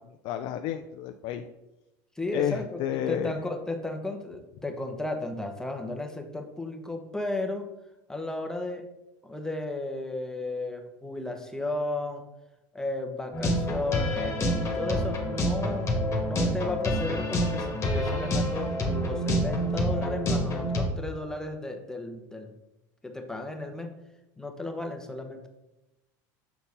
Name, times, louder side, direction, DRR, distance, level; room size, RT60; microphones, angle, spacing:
voice 1, 0.0-1.4 2.3-3.4, left 11 dB, 60° left, 7 dB, 0.5 m, -31 dB
voice 2, 2.2-2.8 3.1-7.7 8.1-8.8 9.2-12.2 12.7-14.4 14.7-22.5 23.0-23.9 24.4-25.5, left 2 dB, 5° left, 4 dB, 1.1 m, -34 dB
sound 1, 13.3-20.9, equal, 25° left, 1.8 m, -27 dB
7.0 x 4.4 x 5.2 m, 0.94 s
supercardioid pair, 105°, 10 cm